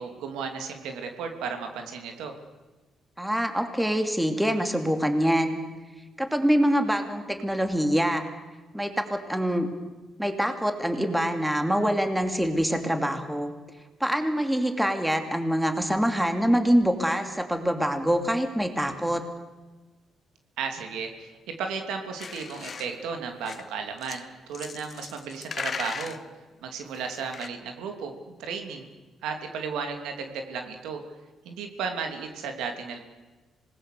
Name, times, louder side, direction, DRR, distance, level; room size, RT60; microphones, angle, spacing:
voice 1, 0.0-2.3 20.6-21.3 21.6-24.2 24.5-26.2 26.6-28.9 29.2-31.0 31.4-33.0, right 5 dB, 90° right, 5 dB, 2.9 m, -34 dB
voice 2, 3.2-5.6 6.2-8.2 8.7-9.7 10.2-13.5 14.0-19.2, equal, 5° right, 6 dB, 2.6 m, -25 dB
sound 1, 22.2-23.0 23.4-23.7 24.0-24.2 24.5-26.2 26.9-27.5, left 5 dB, 45° left, 1.1 m, -37 dB
26.5 x 20.0 x 6.8 m, 1.2 s
cardioid pair, 90°, 0 cm